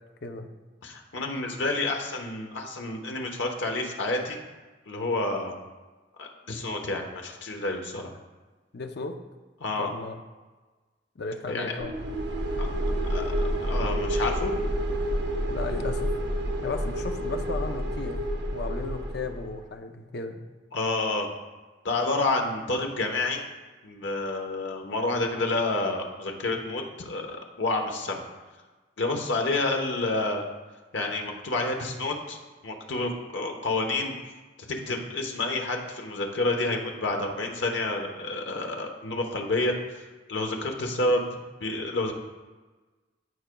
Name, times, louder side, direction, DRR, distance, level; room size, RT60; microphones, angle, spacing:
voice 1, 0.8-4.4 4.9-5.5 6.2-8.1 9.6-9.9 11.5-11.7 12.6-12.7 13.0-14.5 20.7-21.3 21.8-23.4 23.8-28.2 29.0-30.5 30.9-32.4 32.6-34.1 34.7-40.0 40.3-41.2 41.6-42.1, left 2 dB, 75° left, 2 dB, 1.0 m, -29 dB
voice 2, 8.7-9.2 9.8-10.2 11.2-11.9 15.5-16.1 16.6-18.2 18.5-20.4 41.0-41.1, left 3 dB, 60° left, 6 dB, 0.6 m, -35 dB
sound 1, 11.8-19.6, equal, 65° right, 0.8 m, -29 dB
14.0 x 4.8 x 2.3 m, 1.3 s
head